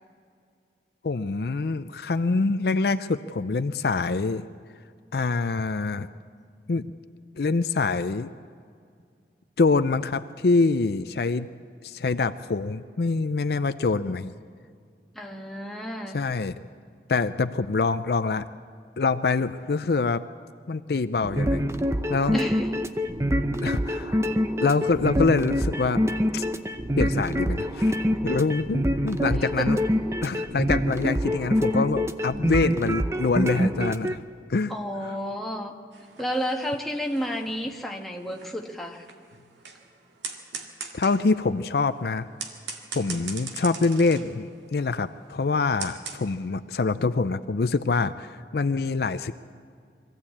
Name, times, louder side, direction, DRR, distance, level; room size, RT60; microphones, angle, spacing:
voice 1, 1.0-4.4 5.1-6.1 6.7-6.8 7.4-8.3 9.6-11.5 11.8-14.3 16.1-16.6 17.1-18.4 19.0-20.2 20.7-21.6 22.1-22.4 23.6-24.2 24.6-26.0 26.3-26.4 26.9-27.9 28.2-29.8 30.2-34.2 34.5-34.7 35.0-35.1 40.9-42.3 42.9-49.4, left 3 dB, 60° left, 11 dB, 0.5 m, -25 dB
voice 2, 15.1-16.2 22.3-22.9 29.6-29.7 34.7-35.7 36.2-39.0, equal, ahead, 0 dB, 1.4 m, -31 dB
sound 1, 21.2-34.1, equal, 15° right, 0.6 m, -25 dB
sound 2, 35.9-46.2, right 5 dB, 85° right, 2.0 m, -41 dB
23.0 x 14.5 x 8.6 m, 2.2 s
head